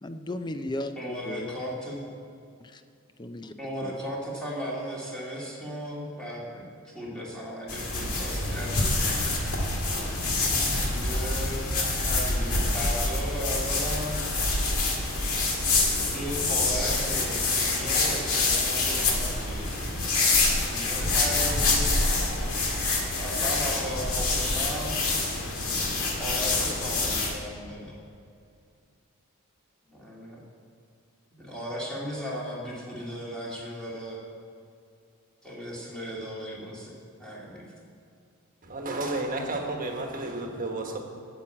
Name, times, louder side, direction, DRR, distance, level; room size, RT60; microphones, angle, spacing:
voice 1, 0.0-1.5 2.6-2.8 3.2-3.5 3.8-3.9, left 1 dB, 20° left, 9 dB, 0.5 m, -35 dB
voice 2, 0.9-2.1 3.6-9.0 10.8-11.6 12.0-14.1 15.7-19.9 20.6-22.0 23.1-24.9 26.2-28.0 29.9-30.4 31.4-34.2 35.4-36.9 37.2-37.7, equal, 5° left, -6 dB, 2.4 m, -36 dB
sound 1, 7.7-27.3, left 2 dB, 65° left, 2.0 m, -26 dB
voice 3, 38.6-41.0, right 2 dB, 40° right, 2 dB, 1.4 m, -32 dB
9.1 x 7.2 x 8.6 m, 2.4 s
head